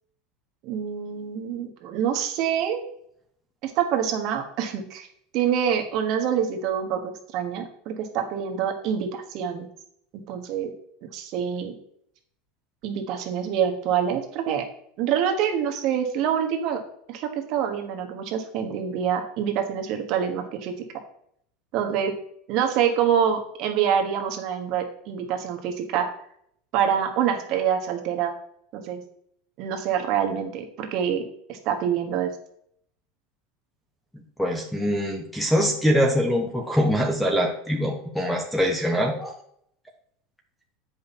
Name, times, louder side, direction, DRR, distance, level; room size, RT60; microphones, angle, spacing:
voice 1, 0.6-2.8 3.6-5.1 5.3-7.0 7.3-9.7 10.3-10.7 11.1-11.7 12.8-14.6 15.0-16.8 17.1-20.7 21.7-22.1 22.5-26.1 26.7-28.3 28.7-29.0 29.6-31.2 31.5-32.3, right 8 dB, 40° right, 5 dB, 1.2 m, -26 dB
voice 2, 34.1-39.3, equal, 5° left, 3 dB, 0.8 m, -23 dB
8.5 x 5.4 x 4.2 m, 0.68 s
supercardioid pair, 175°, 0 cm